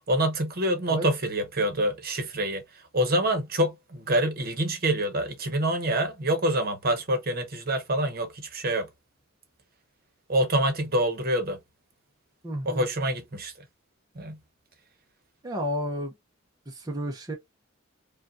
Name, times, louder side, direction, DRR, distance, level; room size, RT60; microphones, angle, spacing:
voice 1, 0.1-2.6 2.9-8.9 10.3-11.6 12.6-13.5 14.1-14.4, right 1 dB, 50° right, 1.1 m, -26 dB
voice 2, 12.4-12.9 15.4-16.1 16.7-17.4, equal, 20° right, 0.8 m, -31 dB
5.0 x 2.4 x 2.6 m
head